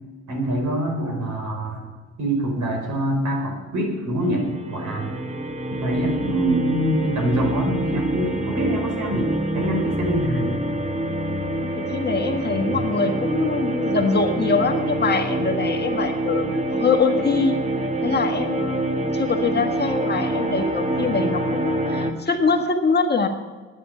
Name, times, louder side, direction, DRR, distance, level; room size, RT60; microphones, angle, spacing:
voice 1, 0.3-1.8 2.2-4.4 4.7-5.1 5.7-10.6, right 1 dB, 70° right, 1 dB, 5.1 m, -24 dB
sound 1, 4.2-22.1, right 2 dB, 20° right, 1.6 m, -26 dB
voice 2, 11.8-17.6 18.0-23.3, left 4 dB, 35° left, 4 dB, 1.6 m, -23 dB
9.8 x 9.7 x 10.0 m, 1.3 s
cardioid pair, 105°, 31 cm